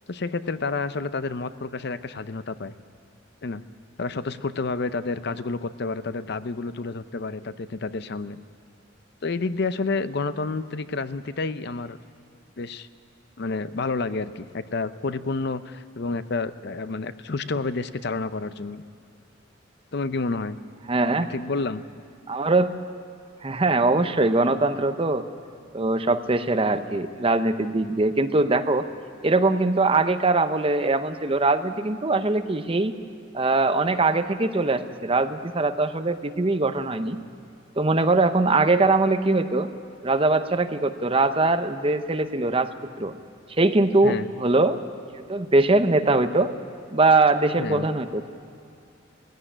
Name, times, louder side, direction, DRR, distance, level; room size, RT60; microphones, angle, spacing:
voice 1, 0.1-2.7 3.4-3.6 4.0-8.4 9.2-12.0 12.6-12.9 13.4-18.8 19.9-20.6 21.1-21.8 44.0-44.2 47.6-47.9, left 3 dB, 55° left, 13 dB, 0.6 m, -29 dB
voice 2, 20.9-21.3 22.3-22.8 23.4-25.2 25.7-28.9 29.2-32.9 33.3-37.2 37.8-39.7 40.0-43.1 43.6-44.8 45.1-46.5 46.9-48.3, right 2 dB, 30° right, 9 dB, 0.8 m, -22 dB
18.5 x 16.0 x 9.9 m, 2.5 s
head